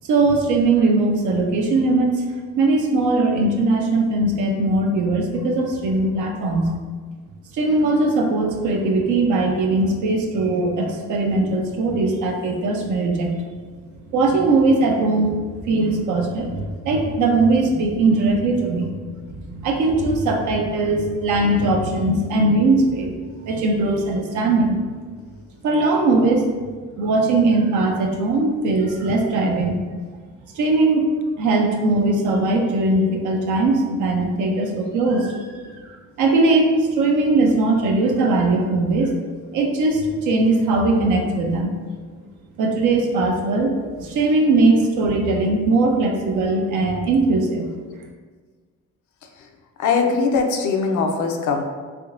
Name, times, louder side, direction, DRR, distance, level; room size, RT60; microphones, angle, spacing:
voice 1, 0.1-2.1 2.6-6.7 7.5-13.3 14.1-15.3 15.7-18.9 19.3-23.2 23.4-24.8 25.6-26.5 27.0-29.8 30.5-31.1 31.4-35.6 36.2-39.1 39.5-41.7 42.6-47.7, right 2 dB, 80° right, 2 dB, 0.6 m, -20 dB
voice 2, 49.8-51.6, left 4 dB, 75° left, 4 dB, 0.5 m, -20 dB
3.4 x 2.8 x 2.6 m, 1.5 s
cardioid pair, 90°, 30 cm